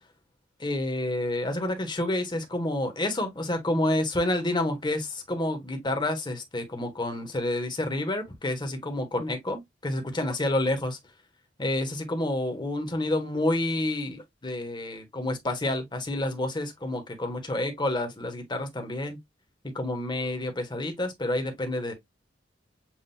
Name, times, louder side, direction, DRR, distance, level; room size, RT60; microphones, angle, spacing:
voice 1, 0.6-11.0 11.6-19.2 19.7-21.9, left 1 dB, 25° left, 1.2 m, -29 dB
7.3 x 2.5 x 2.6 m
head